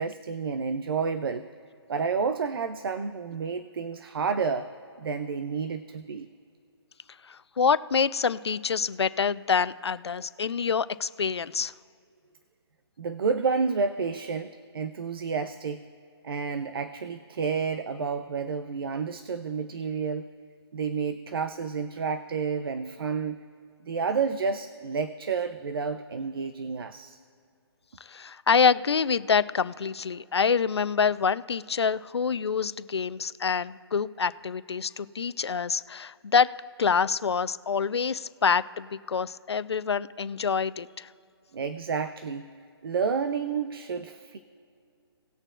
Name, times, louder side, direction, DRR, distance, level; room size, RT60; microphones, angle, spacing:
voice 1, 0.0-1.5 1.9-4.7 5.0-6.3 13.0-15.9 16.2-20.3 20.7-23.4 23.8-27.2 41.5-42.5 42.8-44.4, right 5 dB, 60° right, 9 dB, 0.6 m, -30 dB
voice 2, 7.3-11.7 28.0-36.5 36.8-41.1, left 6 dB, 80° left, 14 dB, 0.6 m, -26 dB
19.5 x 6.7 x 2.5 m, 2.5 s
hypercardioid pair, 155°, 14 cm